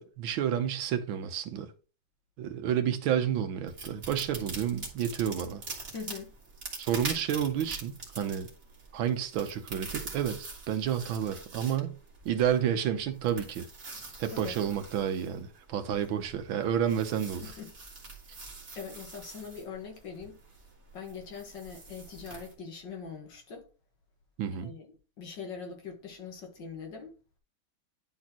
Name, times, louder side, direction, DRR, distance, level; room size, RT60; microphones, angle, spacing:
voice 1, 0.0-1.7 2.4-5.6 6.8-8.5 8.9-12.0 12.2-13.7 14.2-17.4 24.4-24.7, right 9 dB, 75° right, 1.6 m, -30 dB
sound 1, 3.7-22.5, right 3 dB, 35° right, 2.0 m, -44 dB
voice 2, 5.9-6.3 14.3-14.5 17.4-17.7 18.7-20.4 20.9-23.7 24.6-27.1, left 6 dB, 65° left, 2.1 m, -42 dB
10.5 x 4.2 x 2.9 m
omnidirectional pair, 2.2 m